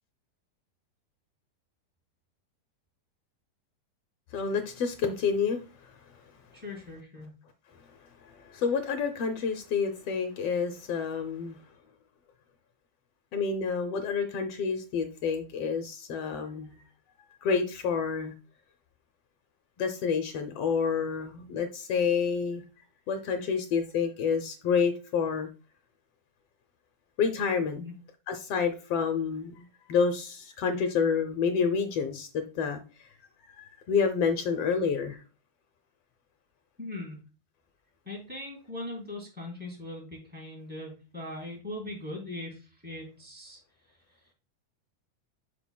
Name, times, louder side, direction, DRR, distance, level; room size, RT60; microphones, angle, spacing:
voice 1, 4.3-5.9 8.3-11.6 13.3-16.8 17.4-18.3 19.8-22.6 23.1-25.5 27.2-27.8 28.3-32.8 33.6-35.2, left 6 dB, 75° left, 7 dB, 1.4 m, -29 dB
voice 2, 6.5-7.3 27.8-27.9 36.8-37.2 38.1-43.6, left 2 dB, 5° right, -2 dB, 3.4 m, -40 dB
10.5 x 6.0 x 2.2 m, 0.33 s
omnidirectional pair, 3.6 m